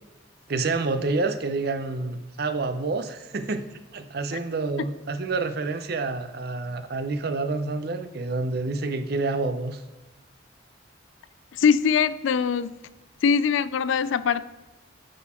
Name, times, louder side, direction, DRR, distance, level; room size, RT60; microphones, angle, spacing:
voice 1, 0.5-3.7 3.9-9.8, right 3 dB, 50° right, 0.5 m, -28 dB
voice 2, 11.5-12.8 13.2-14.5, left 6 dB, 80° left, 0.4 m, -22 dB
9.6 x 4.0 x 4.3 m
head